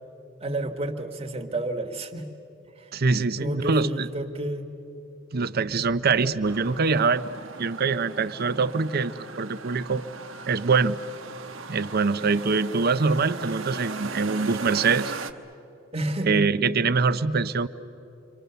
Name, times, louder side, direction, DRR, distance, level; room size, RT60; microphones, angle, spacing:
voice 1, 0.4-2.3 2.8-2.9 3.4-4.6 15.9-16.4, right 1 dB, 30° right, 5 dB, 1.5 m, -30 dB
voice 2, 2.9-4.1 5.3-7.3 7.6-10.0 10.5-11.0 11.7-15.1 16.2-17.7, right 4 dB, 50° right, 13 dB, 0.7 m, -24 dB
sound 1, 6.4-15.3, right 4 dB, 85° right, 1.1 m, -38 dB
29.5 x 25.0 x 6.8 m, 2.8 s
head